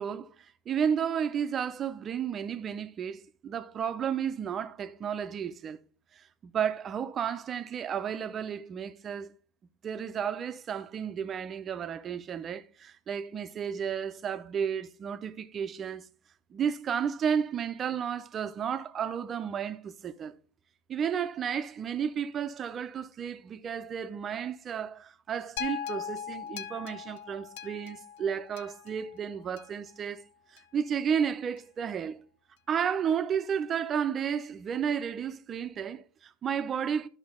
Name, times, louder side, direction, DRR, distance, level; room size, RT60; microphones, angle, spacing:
voice 1, 0.0-5.8 6.1-9.3 9.8-16.1 16.5-20.3 20.9-30.2 30.5-32.2 32.7-37.1, right 7 dB, 35° right, 0.7 m, -32 dB
sound 1, 25.6-29.9 30.6-30.7, left 8 dB, 75° left, 0.6 m, -40 dB
10.5 x 6.4 x 3.7 m
hypercardioid pair, 95°, 0 cm